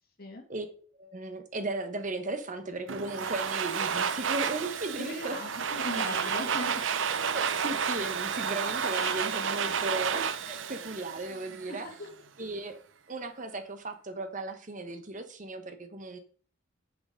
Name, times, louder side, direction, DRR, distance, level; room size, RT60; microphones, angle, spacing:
voice 1, 1.0-5.4 7.3-11.9 12.4-12.8 13.1-16.2, right 2 dB, 40° right, 8 dB, 1.2 m, -36 dB
Domestic sounds home sounds, 2.9-11.8, right 6 dB, 75° right, 0.7 m, -31 dB
sound 1, 3.2-4.2 6.1-7.3 8.9-10.4, left 2 dB, 60° right, 4.6 m, -51 dB
voice 2, 5.0-6.8 11.7-12.1, left 2 dB, 50° left, 2 dB, 2.6 m, -39 dB
8.0 x 7.1 x 5.2 m, 0.42 s
head